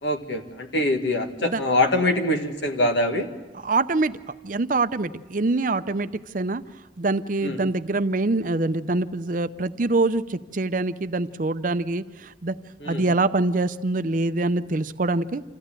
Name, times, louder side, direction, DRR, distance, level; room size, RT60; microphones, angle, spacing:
voice 1, 0.0-3.3 7.4-7.6 12.8-13.0, left 1 dB, 80° left, 5 dB, 2.0 m, -24 dB
voice 2, 3.6-4.2 4.4-6.1 6.3-6.6 7.0-12.6 12.9-15.4, right 2 dB, 45° right, 12 dB, 0.6 m, -24 dB
26.5 x 15.0 x 8.9 m, 1.3 s
head